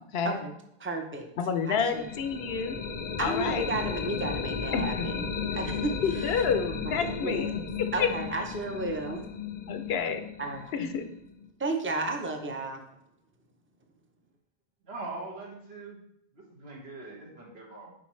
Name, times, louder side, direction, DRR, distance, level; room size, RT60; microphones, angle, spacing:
voice 1, 0.8-1.3 1.7-2.1 3.2-5.3 5.5-7.5 7.9-9.2 10.4-10.7 11.6-12.8, right 2 dB, 15° right, 4 dB, 0.5 m, -33 dB
voice 2, 1.4-2.8 3.2-3.7 4.7-5.1 6.0-7.5 7.8-8.1 9.7-10.2 10.7-11.0, left 6 dB, 75° left, 8 dB, 0.9 m, -29 dB
sound 1, 1.7-11.5, left 6 dB, 45° left, 0.5 m, -35 dB
voice 3, 14.8-16.0 16.3-17.9, right 2 dB, 80° right, -3 dB, 1.8 m, -42 dB
7.1 x 5.0 x 3.1 m, 0.78 s
omnidirectional pair, 1.0 m